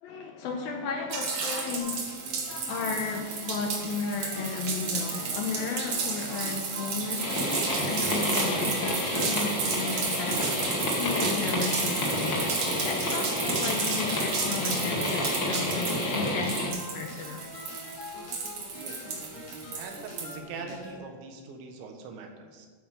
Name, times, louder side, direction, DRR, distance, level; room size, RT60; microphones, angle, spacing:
voice 1, 0.0-10.7 11.0-12.5 12.8-17.4, left 4 dB, 70° left, 3 dB, 2.4 m, -34 dB
sound 1, 1.1-20.3, right 5 dB, 50° right, 2.4 m, -33 dB
sound 2, 1.8-21.0, left 1 dB, 55° left, 4.6 m, -44 dB
sound 3, 7.2-16.7, left 1 dB, 35° left, 2.0 m, -30 dB
voice 2, 18.7-19.2 19.7-22.7, right 4 dB, 90° right, 4 dB, 3.8 m, -42 dB
12.5 x 8.6 x 6.6 m, 1.5 s
omnidirectional pair, 5.1 m